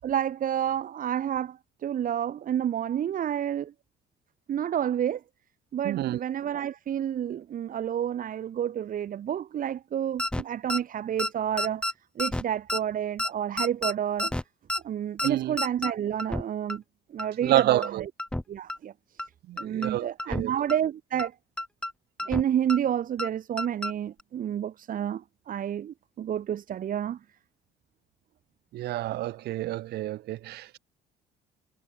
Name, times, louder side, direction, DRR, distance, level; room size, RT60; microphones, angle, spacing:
voice 1, 0.0-3.7 4.5-5.2 5.7-11.8 12.1-14.3 14.8-16.8 17.1-18.1 18.5-19.2 19.6-21.3 22.2-27.2, right 10 dB, 55° right, 6.8 m, -29 dB
voice 2, 5.8-6.2 15.2-15.6 17.4-18.1 19.5-20.5 28.7-30.8, right 15 dB, 75° right, 2.5 m, -28 dB
sound 1, 10.2-10.4 10.7-10.8 11.2-11.3 11.6-11.9 12.2-12.4 12.7-12.8 13.2-13.3 13.6-13.9 14.2-14.4 14.7-14.8 15.2-15.3 15.6-15.9 16.2-16.4 16.7-16.8 17.2-17.3 17.6-17.9 18.2-18.4 18.7-18.8 19.2-19.3 19.6-19.9 20.2-20.4 20.7-20.8 21.2-21.3 21.6-21.9 22.2-22.4 22.7-22.8 23.2-23.3 23.6-23.9 24.2-24.3, left 1 dB, 5° left, 5.8 m, -30 dB
cardioid pair, 110°, 17 cm